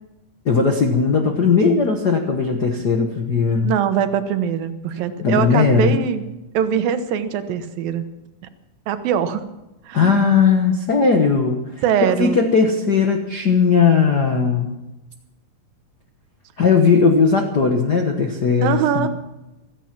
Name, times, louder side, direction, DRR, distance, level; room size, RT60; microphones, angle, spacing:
voice 1, 0.4-3.8 5.2-6.0 9.9-11.6 12.2-14.7 16.6-19.1, left 5 dB, 65° left, 4 dB, 1.0 m, -17 dB
voice 2, 3.6-6.2 6.5-8.0 8.9-9.5 9.9-10.2 11.8-12.4 18.6-19.1, right 8 dB, 85° right, 10 dB, 2.9 m, -22 dB
16.0 x 14.5 x 6.0 m, 0.99 s
omnidirectional pair, 4.0 m